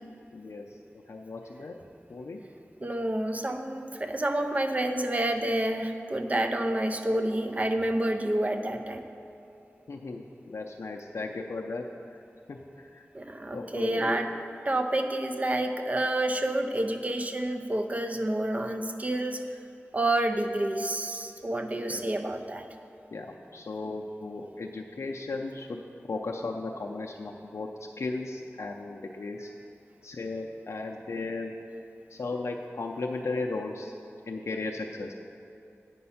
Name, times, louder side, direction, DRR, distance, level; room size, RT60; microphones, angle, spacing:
voice 1, 0.3-0.7 1.1-1.8 2.1-2.4 9.9-11.8 12.5-13.0 13.5-14.1 21.7-22.0 23.1-25.8 26.1-27.7 28.0-29.5 30.0-31.5 32.1-33.9 34.3-35.1, left 3 dB, 75° left, 0 dB, 0.5 m, -35 dB
voice 2, 2.8-9.1 13.1-14.3 14.7-19.4 19.9-22.7, right 1 dB, 30° right, 6 dB, 0.5 m, -29 dB
9.4 x 5.3 x 5.6 m, 2.8 s
wide cardioid pair, 85°, 5 cm